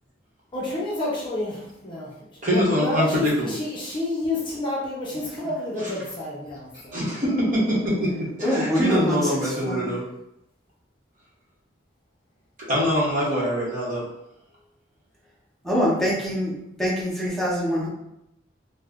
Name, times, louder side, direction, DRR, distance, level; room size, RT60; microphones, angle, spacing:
voice 1, 0.5-7.0, left 2 dB, 25° left, -5 dB, 0.7 m, -29 dB
voice 2, 2.4-3.5 6.9-8.1 8.4-10.0 12.7-14.0, equal, 45° right, -6 dB, 1.0 m, -23 dB
voice 3, 8.4-10.0 15.6-17.9, equal, ahead, -8 dB, 0.9 m, -25 dB
2.6 x 2.1 x 3.5 m, 0.83 s
head